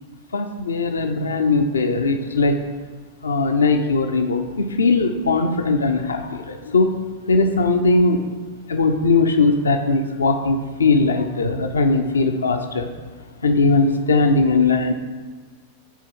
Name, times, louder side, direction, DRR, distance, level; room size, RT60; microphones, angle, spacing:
voice 1, 0.3-2.6 3.2-7.0 7.3-8.2 8.7-12.9 13.4-14.9, left 3 dB, 70° left, 6 dB, 0.6 m, -19 dB
8.2 x 4.3 x 6.2 m, 1.5 s
figure-of-eight pair, 90°, 0 cm